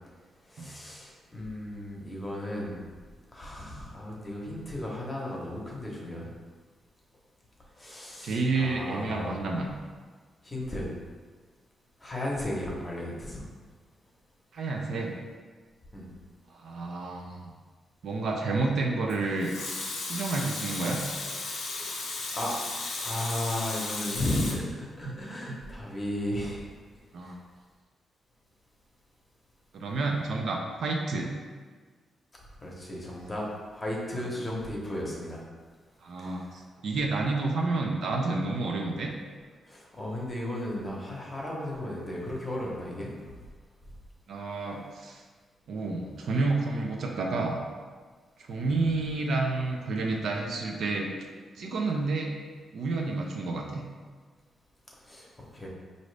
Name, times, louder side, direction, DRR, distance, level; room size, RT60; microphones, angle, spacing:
voice 1, 0.5-2.8 3.3-6.3 7.8-9.4 10.4-10.9 12.0-13.4 15.9-16.1 22.3-22.5 23.0-26.7 27.2-27.3 32.6-33.5 33.7-35.4 36.2-36.4 39.7-43.1 48.6-48.8 55.0-55.7, left 1 dB, 20° left, -3 dB, 0.9 m, -35 dB
voice 2, 8.2-9.7 14.5-15.1 16.5-17.3 18.0-19.5 20.0-21.0 25.5-25.6 27.1-27.3 29.7-31.3 34.1-34.3 36.0-39.1 44.3-45.2 45.7-47.6 48.4-51.1 51.6-52.3 52.7-53.8, right 3 dB, 65° right, 1 dB, 0.5 m, -30 dB
Water tap faucet / Sink (filling or washing) / Liquid, 19.1-24.5, left 3 dB, 90° left, 0.7 m, -35 dB
4.9 x 2.6 x 3.3 m, 1.5 s
cardioid pair, 125°, 0 cm